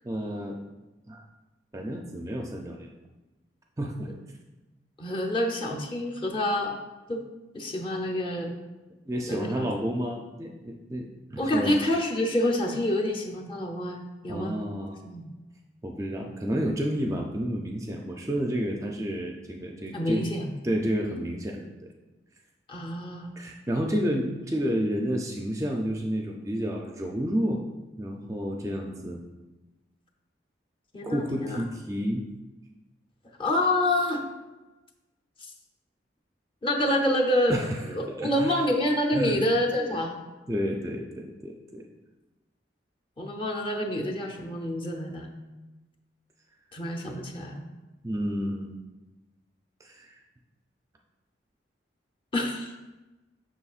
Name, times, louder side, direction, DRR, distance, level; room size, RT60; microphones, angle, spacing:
voice 1, 0.0-0.6 1.1-1.2 1.7-2.9 3.8-4.1 9.1-11.8 14.3-15.0 15.8-20.3 20.6-21.6 23.4-27.6 28.0-29.2 31.0-32.2 37.5-37.8 38.1-38.6 39.1-39.4 39.8-40.0 40.5-41.8 48.0-48.8 49.8-50.2, equal, 15° right, 1 dB, 0.4 m, -30 dB
voice 2, 5.0-6.7 7.1-7.2 7.5-8.5 9.3-9.6 11.4-14.6 15.0-15.2 19.9-20.5 22.7-23.3 30.9-31.6 33.4-34.3 35.4-35.5 36.6-37.6 37.9-40.1 43.2-45.3 46.7-47.7 52.3-52.7, left 1 dB, 30° left, 1 dB, 0.7 m, -27 dB
6.9 x 6.0 x 2.4 m, 1.1 s
head